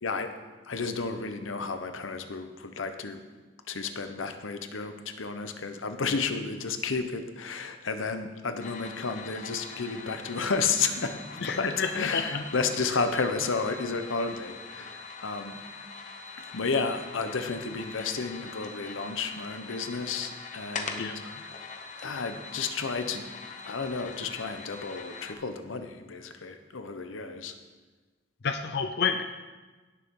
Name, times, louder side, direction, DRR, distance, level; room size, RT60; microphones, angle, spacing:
voice 1, 0.0-0.3 0.7-3.2 3.7-15.6 16.5-21.1 22.0-23.3 23.7-27.5, left 4 dB, 90° left, 8 dB, 0.9 m, -32 dB
sound 1, 8.6-25.3, left 4 dB, 40° left, 0.9 m, -43 dB
voice 2, 11.4-12.5 21.0-21.3 28.4-29.2, left 5 dB, 55° left, 6 dB, 0.5 m, -30 dB
17.0 x 6.8 x 3.8 m, 1.3 s
head